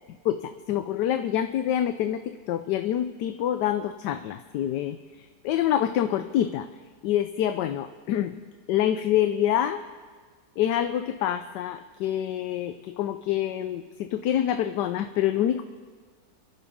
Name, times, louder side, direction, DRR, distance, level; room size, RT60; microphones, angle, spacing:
voice 1, 0.2-2.2 2.5-6.7 7.0-8.4 8.7-9.8 10.6-15.6, left 11 dB, 80° left, 9 dB, 1.2 m, -26 dB
29.5 x 11.0 x 3.7 m, 1.5 s
omnidirectional pair, 1.8 m